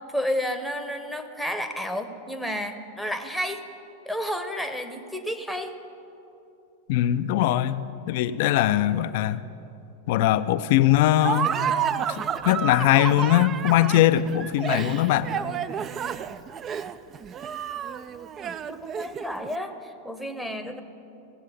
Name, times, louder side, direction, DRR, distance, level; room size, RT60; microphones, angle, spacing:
voice 1, 0.1-3.6 4.1-5.7 18.7-20.8, equal, ahead, 7 dB, 0.9 m, -31 dB
voice 2, 6.9-9.4 10.1-11.6 12.1-15.3, left 13 dB, 50° left, 14 dB, 0.4 m, -21 dB
Laughter, 11.2-19.5, right 8 dB, 25° right, 0.4 m, -30 dB
15.5 x 8.1 x 7.2 m, 2.9 s
figure-of-eight pair, 90°, 0 cm